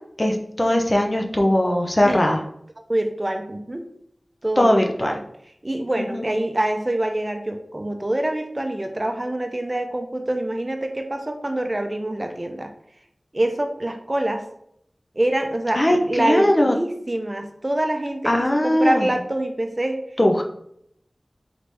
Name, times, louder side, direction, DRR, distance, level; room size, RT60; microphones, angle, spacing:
voice 1, 0.2-2.4 4.6-5.1 6.0-6.3 15.7-16.8 18.2-19.1 20.2-20.4, left 1 dB, 35° left, 2 dB, 0.6 m, -19 dB
voice 2, 2.0-2.4 2.9-3.9 4.4-5.2 5.6-12.7 13.3-14.4 15.2-20.0, right 1 dB, 35° right, 5 dB, 0.6 m, -25 dB
4.0 x 3.3 x 3.3 m, 0.71 s
wide cardioid pair, 55°, 0 cm